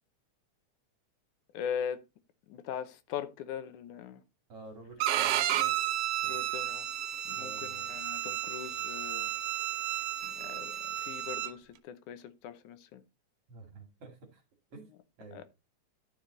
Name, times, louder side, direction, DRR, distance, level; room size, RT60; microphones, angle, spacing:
voice 1, 1.5-2.0 2.5-4.2 5.5-5.7 6.2-6.9 7.3-9.3 10.2-13.0 15.3-15.4, left 8 dB, 90° left, 2.4 m, -40 dB
voice 2, 4.5-5.5 6.2-6.4 7.4-7.9 13.5-14.4 14.7-14.9 15.2-15.4, right 3 dB, 55° right, 3.0 m, -49 dB
Bowed string instrument, 5.0-11.5, right 12 dB, 80° right, 1.4 m, -32 dB
12.0 x 4.8 x 3.9 m
omnidirectional pair, 3.4 m